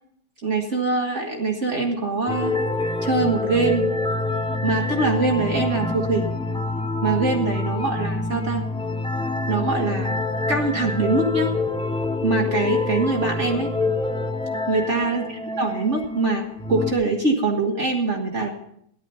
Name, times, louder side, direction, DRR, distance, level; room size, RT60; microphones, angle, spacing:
voice 1, 0.4-2.5 3.0-3.9 4.6-6.3 7.0-8.7 9.5-10.2 10.5-11.5 12.2-13.7 14.7-15.2 15.6-18.5, right 3 dB, 50° right, 0 dB, 1.9 m, -23 dB
sound 1, 2.3-16.9, left 2 dB, 5° left, 0.4 m, -26 dB
14.0 x 11.0 x 5.6 m, 0.71 s
omnidirectional pair, 1.6 m